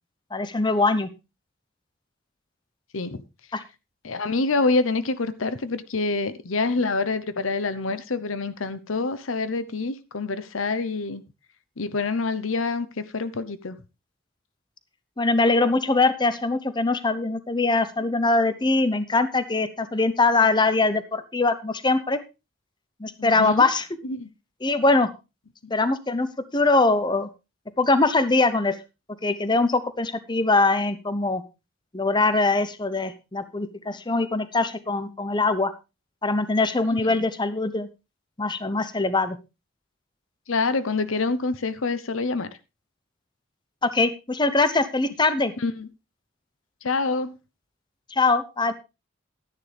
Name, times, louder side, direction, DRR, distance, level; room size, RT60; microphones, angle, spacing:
voice 1, 0.3-1.1 3.5-3.6 15.2-22.2 23.0-23.9 24.6-25.1 25.7-26.3 26.5-27.3 27.8-28.8 29.2-31.4 31.9-35.7 36.2-37.9 38.4-39.4 43.8-45.5 48.1-48.7, left 3 dB, 20° left, 0.9 m, -22 dB
voice 2, 4.0-11.2 11.8-13.8 23.2-23.6 24.0-24.3 25.6-25.7 36.9-37.2 40.5-42.5 45.6-45.9 46.8-47.4, left 3 dB, 90° left, 0.9 m, -26 dB
12.0 x 10.5 x 3.5 m
head